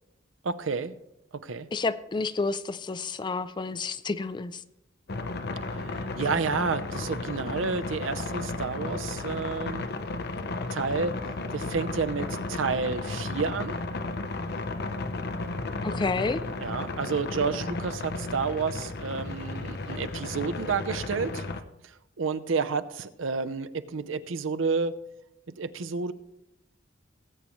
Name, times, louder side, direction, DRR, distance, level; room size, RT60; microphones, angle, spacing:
voice 1, 0.4-0.9 1.4-1.7 5.8-9.8 10.7-11.1 11.5-13.8 16.6-21.4 22.2-25.0 25.6-26.1, right 5 dB, 80° right, 11 dB, 0.6 m, -30 dB
voice 2, 1.7-4.6 15.8-16.4, left 3 dB, 25° left, 13 dB, 0.4 m, -30 dB
sound 1, 5.1-21.6, left 2 dB, 55° left, 0.7 m, -34 dB
19.0 x 8.4 x 3.1 m, 0.90 s
head